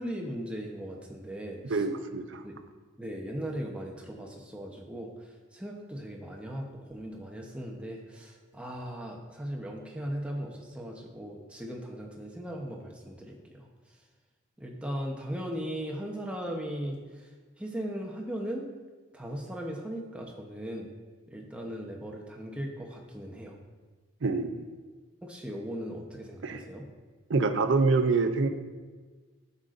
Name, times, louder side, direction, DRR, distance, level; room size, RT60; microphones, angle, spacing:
voice 1, 0.0-1.6 2.4-2.6 3.0-5.1 5.5-13.7 14.6-17.3 17.6-18.7 19.1-20.9 21.3-23.6 25.2-26.8, equal, 5° right, 0 dB, 0.8 m, -38 dB
voice 2, 1.7-2.4 24.2-24.7 26.4-26.6 27.3-28.5, right 3 dB, 65° right, 8 dB, 0.5 m, -26 dB
9.6 x 6.5 x 2.5 m, 1.4 s
head